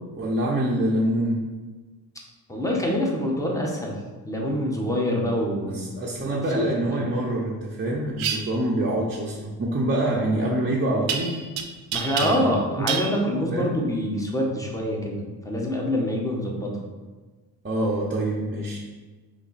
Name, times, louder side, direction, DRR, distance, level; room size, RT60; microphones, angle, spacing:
voice 1, 0.1-1.4 5.7-11.4 12.2-12.5 12.8-12.9 13.5-13.7 17.6-18.8, right 1 dB, 25° right, -5 dB, 0.8 m, -25 dB
voice 2, 2.5-3.9 4.3-5.9 6.5-6.6 6.9-7.0 11.9-16.7, equal, 5° left, -2 dB, 1.2 m, -26 dB
sound 1, 8.2-8.4 11.1-11.6 11.9-12.6 12.9-13.1, right 7 dB, 90° right, 0.6 m, -27 dB
4.1 x 3.1 x 4.1 m, 1.3 s
supercardioid pair, 60°, 46 cm